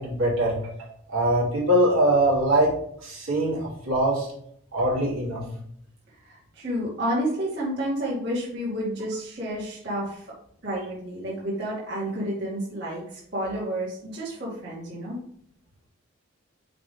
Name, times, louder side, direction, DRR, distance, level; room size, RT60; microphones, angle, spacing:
voice 1, 0.0-2.7 3.0-4.3 4.7-5.4, right 1 dB, 80° right, -6 dB, 2.8 m, -23 dB
voice 2, 6.2-10.3 10.6-15.2, right 1 dB, 50° right, -8 dB, 2.4 m, -30 dB
5.8 x 5.1 x 3.5 m, 0.67 s
head